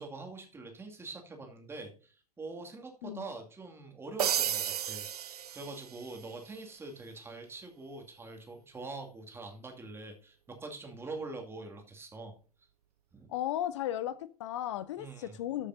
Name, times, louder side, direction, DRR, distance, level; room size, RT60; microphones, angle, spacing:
voice 1, 0.0-12.7 13.1-13.3 15.0-15.4, right 3 dB, 10° right, 2.3 m, -44 dB
sound 1, 4.2-6.3, right 9 dB, 70° right, 0.4 m, -33 dB
voice 2, 13.3-15.7, left 12 dB, 50° left, 0.5 m, -35 dB
13.5 x 6.5 x 2.7 m
figure-of-eight pair, 95°, 20 cm